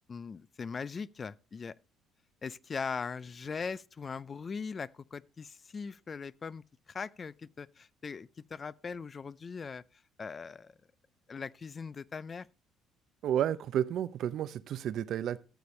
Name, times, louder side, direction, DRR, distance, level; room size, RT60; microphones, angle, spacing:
voice 1, 0.1-1.7 2.4-10.7 11.3-12.5, left 5 dB, 35° left, 0.4 m, -40 dB
voice 2, 13.2-15.4, right 10 dB, 65° right, 0.5 m, -31 dB
13.5 x 6.9 x 3.1 m
supercardioid pair, 90°, 0 cm